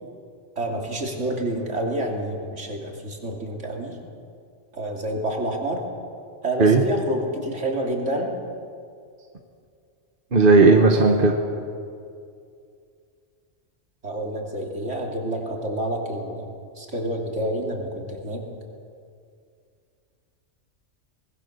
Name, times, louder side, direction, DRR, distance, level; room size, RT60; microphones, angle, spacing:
voice 1, 0.6-4.0 4.7-5.8 6.4-8.3 11.0-11.5 14.0-16.5 16.8-18.4, right 1 dB, 70° right, 0 dB, 3.3 m, -28 dB
voice 2, 10.3-11.3, right 3 dB, 45° right, 3 dB, 1.5 m, -15 dB
24.0 x 20.0 x 6.7 m, 2.4 s
omnidirectional pair, 1.3 m